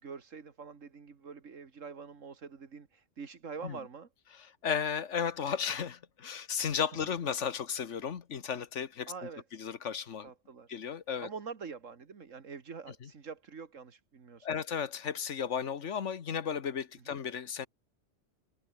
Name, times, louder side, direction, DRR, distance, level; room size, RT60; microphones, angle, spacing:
voice 1, 0.0-4.1 9.1-9.4 10.2-10.7 11.2-14.6 17.0-17.2, right 5 dB, 80° right, 2.2 m, -45 dB
voice 2, 4.6-9.1 9.6-10.3 10.7-11.3 13.0-13.1 14.4-17.7, left 7 dB, 70° left, 1.5 m, -34 dB
open air
omnidirectional pair, 1.3 m